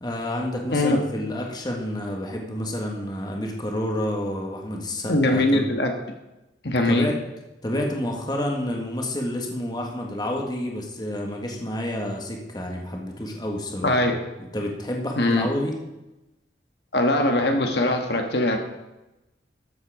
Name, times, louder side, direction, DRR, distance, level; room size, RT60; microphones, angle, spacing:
voice 1, 0.0-5.7 6.9-7.1 7.6-13.9 14.5-15.8, left 1 dB, 25° left, 0 dB, 1.8 m, -29 dB
voice 2, 5.1-5.9 6.6-7.1 13.8-14.2 15.2-15.5 16.9-18.6, left 1 dB, 65° left, 3 dB, 1.6 m, -21 dB
13.5 x 8.0 x 5.0 m, 0.98 s
head